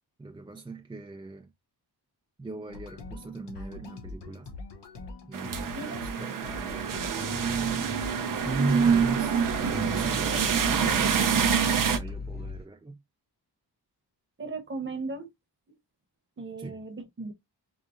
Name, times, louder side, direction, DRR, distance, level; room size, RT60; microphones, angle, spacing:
voice 1, 0.2-1.5 2.4-4.5 5.2-7.1 8.4-9.4 9.6-11.1 11.9-13.0 16.6-16.8, right 3 dB, 10° right, 0.4 m, -37 dB
sound 1, 2.7-12.1, left 3 dB, 80° left, 1.0 m, -43 dB
sound 2, 5.3-12.0, right 7 dB, 50° right, 0.6 m, -26 dB
sound 3, 6.6-12.7, left 3 dB, 25° left, 0.7 m, -39 dB
voice 2, 14.4-15.3 16.4-17.3, right 3 dB, 30° right, 1.0 m, -36 dB
4.9 x 2.8 x 2.5 m
wide cardioid pair, 150°, 41 cm